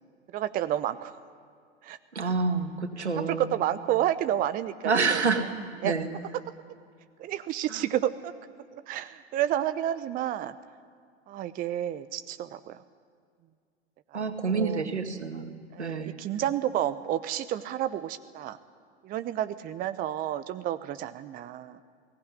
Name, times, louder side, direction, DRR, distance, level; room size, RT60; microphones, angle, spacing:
voice 1, 0.3-1.2 1.8-2.3 3.3-5.9 7.2-8.3 8.7-10.5 11.3-12.8 14.1-14.2 14.5-14.8 15.7-18.6 19.0-21.8, right 11 dB, 25° right, 12 dB, 0.8 m, -30 dB
voice 2, 2.1-3.5 4.8-6.1 7.7-7.8 14.1-16.1, right 4 dB, 80° right, 6 dB, 2.2 m, -28 dB
21.5 x 18.0 x 10.0 m, 2.1 s
figure-of-eight pair, 95°, 33 cm